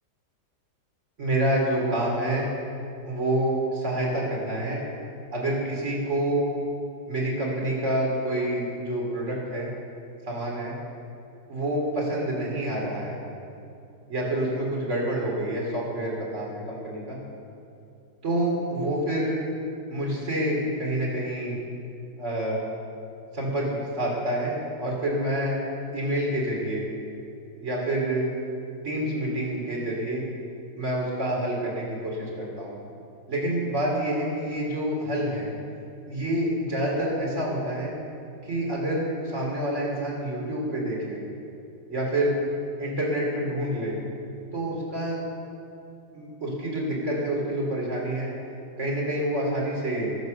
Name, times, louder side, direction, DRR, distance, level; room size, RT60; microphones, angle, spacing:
voice 1, 1.2-2.5 3.0-4.8 5.3-6.5 7.1-9.7 10.3-10.7 11.5-13.2 14.1-17.2 18.2-19.4 19.9-21.6 22.2-22.6 23.3-25.6 25.9-26.8 27.6-28.3 28.8-30.3 30.8-32.8 33.3-35.5 36.1-37.9 38.4-41.2 41.9-42.4 42.8-44.0 44.5-45.2 46.1-48.3 48.8-50.2, right 1 dB, 40° right, -3 dB, 3.6 m, -27 dB
22.5 x 7.6 x 6.6 m, 2.6 s
omnidirectional pair, 1.9 m